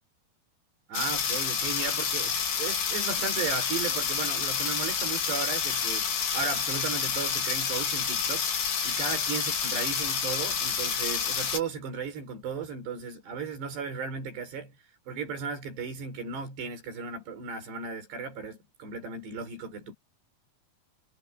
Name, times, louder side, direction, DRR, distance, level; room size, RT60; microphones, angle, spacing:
sound 1, 0.9-11.6, left 6 dB, 75° left, 5.9 m, -29 dB
voice 1, 0.9-6.1 6.3-8.5 8.8-14.7 15.1-19.9, right 5 dB, 90° right, 7.8 m, -35 dB
omnidirectional pair, 4.7 m